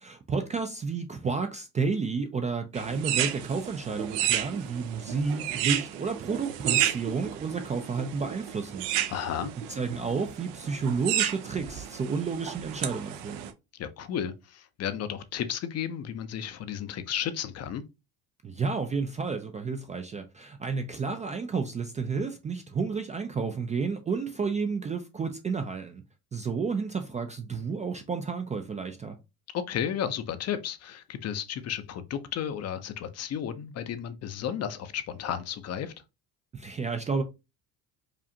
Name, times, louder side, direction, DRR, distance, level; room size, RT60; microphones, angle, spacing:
voice 1, 0.0-8.9 9.7-13.5 18.4-26.0 26.3-29.2 36.5-37.2, right 5 dB, 20° right, 0.3 m, -31 dB
sound 1, 2.7-13.5, right 11 dB, 85° right, 0.7 m, -32 dB
voice 2, 9.1-9.5 13.7-17.8 29.5-35.9, left 9 dB, 40° left, 0.5 m, -33 dB
5.0 x 2.4 x 2.7 m
cardioid pair, 115°, 39 cm